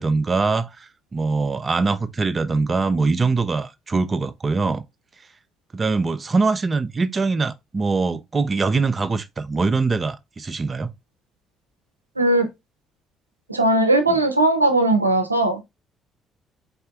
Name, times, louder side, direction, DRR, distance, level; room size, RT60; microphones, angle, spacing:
voice 1, 0.0-4.8 5.7-10.9 14.1-14.2, right 4 dB, 30° right, 0.6 m, -23 dB
voice 2, 12.2-12.5 13.5-15.6, right 2 dB, 85° right, 0.6 m, -18 dB
4.4 x 4.2 x 2.3 m
figure-of-eight pair, 45°, 0 cm